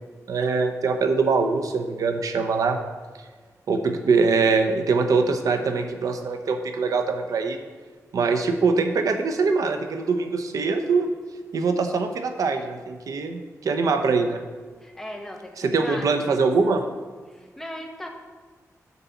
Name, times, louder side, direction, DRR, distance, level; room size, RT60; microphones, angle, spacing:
voice 1, 0.3-2.8 3.7-7.6 8.1-11.1 11.5-14.4 15.6-16.8, right 4 dB, 80° right, 6 dB, 0.8 m, -23 dB
voice 2, 14.8-16.3 17.3-18.1, left 1 dB, 5° left, 1 dB, 1.1 m, -37 dB
9.4 x 4.2 x 7.0 m, 1.4 s
wide cardioid pair, 150°, 6 cm